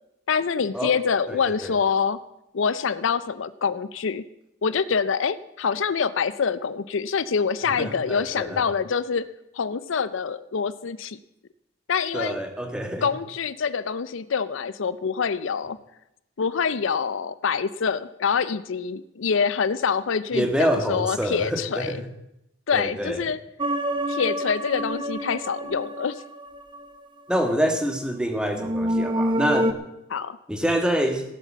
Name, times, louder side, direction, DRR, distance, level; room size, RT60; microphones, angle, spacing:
voice 1, 0.3-2.2 2.5-4.2 4.6-9.2 9.5-11.2 11.9-12.4 13.0-15.8 16.4-22.0 22.7-23.4 24.1-26.2 30.1-30.4, left 6 dB, 65° left, 15 dB, 0.5 m, -25 dB
voice 2, 1.3-1.7 7.6-8.6 12.1-13.1 20.3-22.1 22.7-23.2 27.3-29.8 30.5-31.2, equal, 5° right, 5 dB, 1.5 m, -26 dB
sound 1, 23.6-26.9 28.5-29.7, right 1 dB, 20° right, 0.8 m, -27 dB
17.0 x 8.0 x 7.3 m, 0.87 s
head